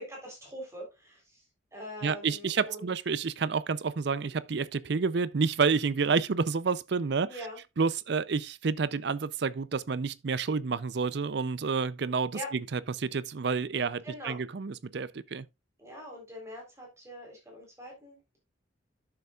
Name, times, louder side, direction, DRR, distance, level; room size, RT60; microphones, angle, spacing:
voice 1, 0.0-1.4 1.7-2.9 7.2-7.6 12.3-12.5 14.0-14.4 15.8-18.4, equal, 15° right, 3.7 m, -43 dB
voice 2, 2.0-7.5 7.8-15.5, right 5 dB, 55° right, 0.5 m, -29 dB
11.5 x 6.8 x 2.4 m
head